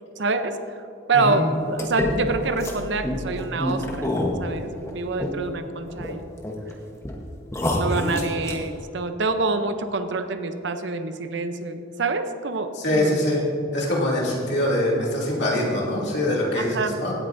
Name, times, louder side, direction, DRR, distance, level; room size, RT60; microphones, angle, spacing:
voice 1, 0.2-0.6 1.1-4.1 4.4-6.2 7.8-13.2 16.6-17.0, right 3 dB, 65° right, 9 dB, 0.6 m, -26 dB
sound 1, 1.8-5.6 5.9-6.7 7.0-7.1 7.5-8.7, left 1 dB, 15° left, 1.0 m, -27 dB
voice 2, 12.7-13.4 13.7-17.1, left 1 dB, 60° left, -5 dB, 2.6 m, -23 dB
16.5 x 9.2 x 2.6 m, 2.7 s
head